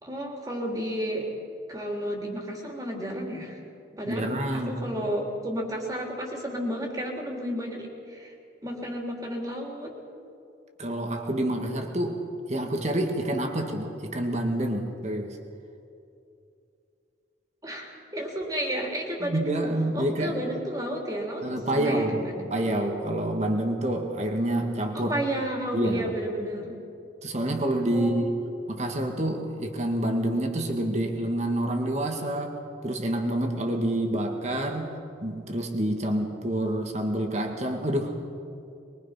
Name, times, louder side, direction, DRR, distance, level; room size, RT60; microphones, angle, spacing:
voice 1, 0.0-1.3 1.7-3.6 4.0-8.3 8.6-9.9 17.6-19.5 19.9-22.5 24.9-26.8 27.9-28.4, equal, 20° right, 0 dB, 3.3 m, -32 dB
voice 2, 4.1-4.7 10.8-12.2 12.5-15.4 19.2-20.4 21.4-22.2 22.5-25.2 25.7-26.0 27.2-28.3 28.7-32.5 32.8-38.2, right 1 dB, 35° right, 3 dB, 2.1 m, -27 dB
23.0 x 23.0 x 5.8 m, 2.6 s
head